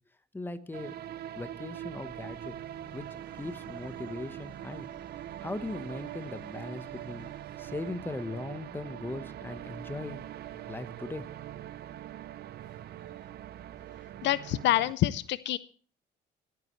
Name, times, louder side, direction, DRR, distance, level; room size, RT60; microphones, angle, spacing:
voice 1, 0.3-1.0 1.3-2.5 2.9-3.1 3.3-4.9 5.4-7.3 7.6-10.3 10.7-11.3, left 2 dB, 10° left, 10 dB, 1.0 m, -39 dB
sound 1, 0.7-14.9, right 12 dB, 55° right, 0.6 m, -42 dB
Subway metro underground, 2.0-14.9, right 2 dB, 30° right, 5.7 m, -59 dB
voice 2, 14.2-15.6, left 13 dB, 70° left, 17 dB, 0.6 m, -27 dB
28.0 x 9.5 x 3.1 m, 0.42 s
cardioid pair, 120°, 19 cm